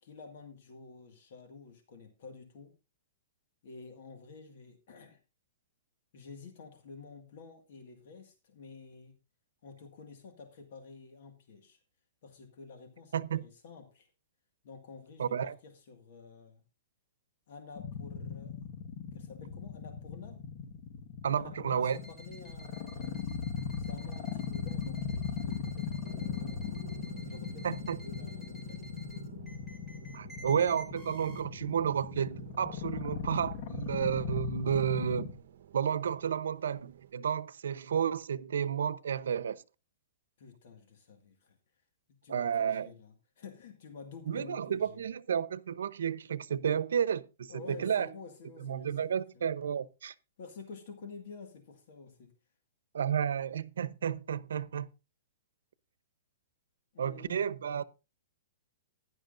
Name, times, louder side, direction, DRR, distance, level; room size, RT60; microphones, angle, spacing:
voice 1, 0.0-2.7 3.6-5.2 6.1-9.2 9.6-11.8 12.2-14.1 14.6-16.6 17.5-18.5 19.1-20.4 21.3-23.4 23.8-26.7 27.2-28.8 40.4-41.6 42.2-45.0 47.5-49.5 50.4-52.3 56.9-57.5, left 4 dB, 50° left, 1.9 m, -50 dB
voice 2, 13.1-13.4 15.2-15.5 21.2-22.0 27.6-28.0 30.1-35.3 35.7-39.6 42.3-42.9 44.3-48.1 48.6-50.1 52.9-54.9 57.0-57.8, right 8 dB, 90° right, 0.8 m, -31 dB
sound 1, 17.8-35.3, left 7 dB, 35° left, 1.5 m, -38 dB
sound 2, 21.8-31.4, right 1 dB, 5° left, 3.0 m, -54 dB
sound 3, 26.0-37.1, right 10 dB, 60° right, 1.1 m, -53 dB
16.0 x 11.0 x 2.6 m
hypercardioid pair, 170°, 0 cm